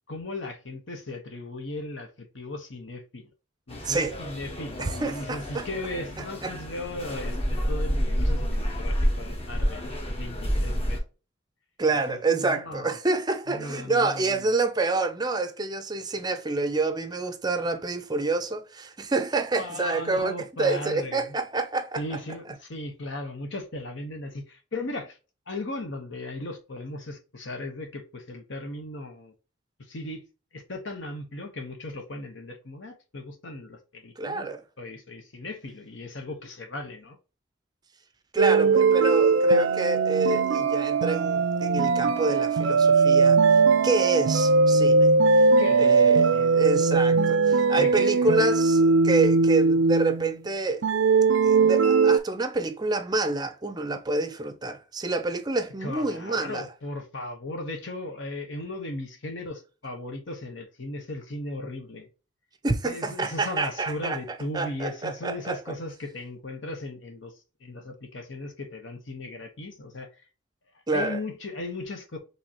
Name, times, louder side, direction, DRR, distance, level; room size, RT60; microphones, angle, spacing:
voice 1, 0.1-3.3 3.7-11.0 12.1-13.0 13.5-14.5 19.5-21.4 22.0-25.2 25.5-29.3 29.9-30.2 30.5-34.5 34.8-37.2 45.6-46.6 47.8-48.3 55.8-62.1 62.8-67.3 67.6-70.1 70.9-72.2, left 2 dB, 70° left, 1.1 m, -37 dB
sound 1, 3.7-11.0, equal, 30° left, 1.1 m, -29 dB
voice 2, 4.8-5.7 6.4-6.5 11.8-22.2 34.2-34.6 38.3-43.4 43.8-45.5 45.8-50.8 51.4-56.7 62.6-64.2 64.5-65.6 70.9-71.2, right 3 dB, 20° right, 0.5 m, -27 dB
sound 2, 38.4-50.4 50.8-52.2, right 4 dB, 70° right, 0.5 m, -20 dB
5.2 x 3.3 x 2.9 m
head